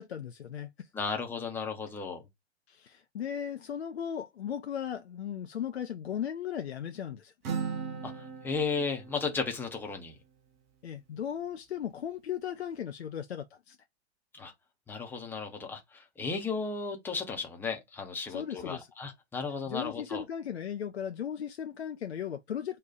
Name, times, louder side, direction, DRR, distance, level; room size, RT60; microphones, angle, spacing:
voice 1, 0.0-0.9 2.7-7.3 10.8-13.8 18.3-18.9 19.7-22.8, left 9 dB, 65° left, 0.5 m, -37 dB
voice 2, 0.9-2.2 8.0-8.1 8.4-10.2 14.4-14.5 14.9-20.2, left 4 dB, 5° left, 0.6 m, -34 dB
Acoustic guitar, 7.4-11.1, right 6 dB, 25° right, 0.9 m, -40 dB
4.2 x 2.3 x 3.8 m
figure-of-eight pair, 110°, 35 cm